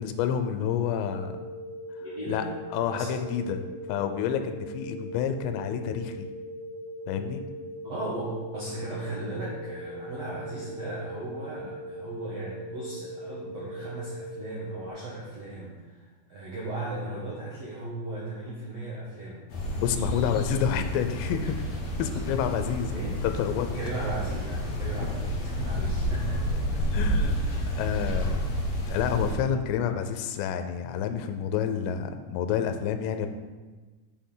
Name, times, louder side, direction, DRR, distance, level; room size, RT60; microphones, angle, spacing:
voice 1, 0.0-1.4 2.3-2.4 2.7-6.3 7.1-7.4 19.8-21.6 22.0-23.7 25.0-25.1 26.9-27.4 27.8-28.4 28.9-33.3, left 8 dB, 85° left, 8 dB, 2.8 m, -29 dB
sound 1, 1.0-14.9, equal, 55° right, 2.6 m, -40 dB
voice 2, 2.0-2.5 2.9-3.2 7.8-19.5 22.9-23.2 23.7-26.5 27.4-28.2, right 2 dB, 80° right, -6 dB, 1.4 m, -37 dB
sound 2, 19.5-29.4, equal, 55° left, 2.2 m, -30 dB
8.3 x 6.7 x 3.8 m, 1.3 s
omnidirectional pair, 5.0 m